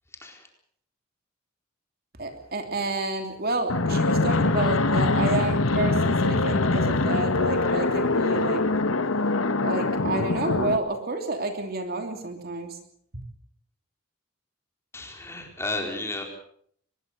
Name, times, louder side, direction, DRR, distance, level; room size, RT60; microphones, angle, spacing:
voice 1, 0.1-0.5 14.9-16.2, left 2 dB, 15° left, 2 dB, 4.4 m, -33 dB
voice 2, 2.2-8.7 9.6-12.8, right 2 dB, 45° right, 5 dB, 3.0 m, -29 dB
Fixed-wing aircraft airplane, 3.7-10.8, left 3 dB, 85° left, 1.3 m, -23 dB
24.0 x 21.0 x 6.9 m, 0.64 s
head